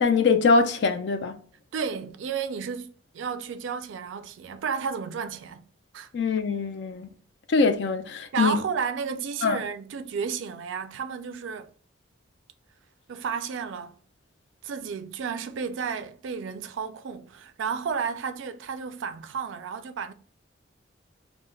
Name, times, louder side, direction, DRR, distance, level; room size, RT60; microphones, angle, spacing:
voice 1, 0.0-1.3 6.1-7.1 7.5-8.6 9.4-9.6, left 4 dB, 60° left, 0.3 m, -23 dB
voice 2, 1.7-5.7 5.9-6.1 8.3-11.7 13.1-14.0 14.6-20.1, right 6 dB, 75° right, 0.4 m, -32 dB
2.2 x 2.1 x 3.1 m
head